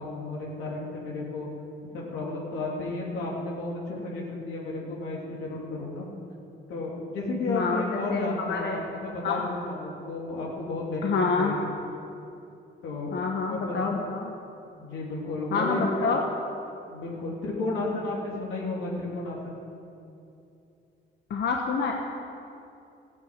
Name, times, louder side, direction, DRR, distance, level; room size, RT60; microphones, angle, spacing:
voice 1, 0.0-1.5 1.9-6.1 6.7-9.4 9.7-11.1 11.4-11.6 12.8-14.0 14.8-16.1 16.9-19.6, left 2 dB, 85° left, -4 dB, 3.2 m, -32 dB
voice 2, 7.5-8.8 9.2-9.5 11.0-11.6 13.1-14.3 15.5-16.2 21.3-21.9, left 4 dB, 60° left, 1 dB, 1.3 m, -27 dB
14.5 x 9.3 x 8.9 m, 2.7 s
cardioid pair, 90°, 20 cm